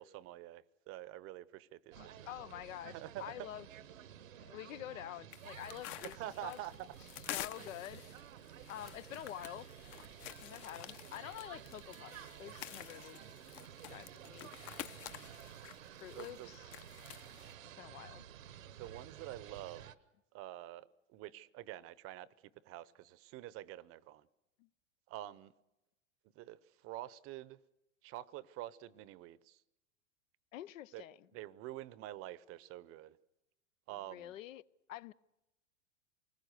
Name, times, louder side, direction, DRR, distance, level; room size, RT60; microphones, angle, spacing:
voice 1, 0.0-2.2 2.9-3.3 6.1-6.7 16.1-16.5 18.8-19.9 20.3-22.3 22.6-24.3 25.1-25.5 26.4-26.6 26.8-27.6 28.0-29.6 30.9-31.0 31.3-33.2 33.9-34.3, right 14 dB, 35° right, 0.7 m, -47 dB
sound 1, 1.9-20.0, right 10 dB, 85° right, 1.2 m, -53 dB
voice 2, 2.0-3.7 4.5-6.6 7.3-8.0 8.7-9.7 10.4-13.2 13.9-14.5 16.0-16.7 17.8-18.2 24.6-24.7 30.5-31.3 34.1-34.6 34.9-35.1, left 13 dB, 75° left, 0.7 m, -47 dB
sound 2, 5.3-17.5, left 13 dB, 40° left, 0.8 m, -49 dB
28.0 x 20.0 x 6.6 m
hypercardioid pair, 120°, 39 cm